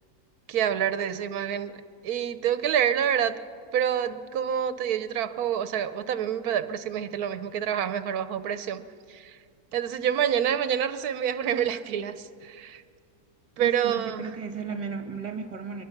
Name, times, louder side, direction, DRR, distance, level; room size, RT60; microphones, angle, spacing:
voice 1, 0.5-1.7 2.0-3.4 3.7-8.8 9.1-9.4 9.7-12.8 13.6-14.4, right 9 dB, 85° right, 12 dB, 1.2 m, -27 dB
voice 2, 13.6-15.8, right 5 dB, 30° right, 6 dB, 1.6 m, -35 dB
23.5 x 20.5 x 5.9 m, 2.2 s
omnidirectional pair, 1.6 m